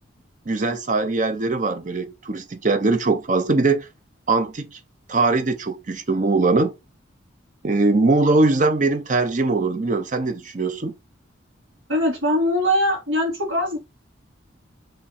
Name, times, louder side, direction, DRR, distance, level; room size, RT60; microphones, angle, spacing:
voice 1, 0.5-3.9 4.3-4.8 5.1-6.7 7.6-10.9, right 3 dB, 40° right, 0.6 m, -21 dB
voice 2, 11.9-13.8, equal, 80° right, 1.8 m, -21 dB
3.6 x 3.2 x 4.2 m
head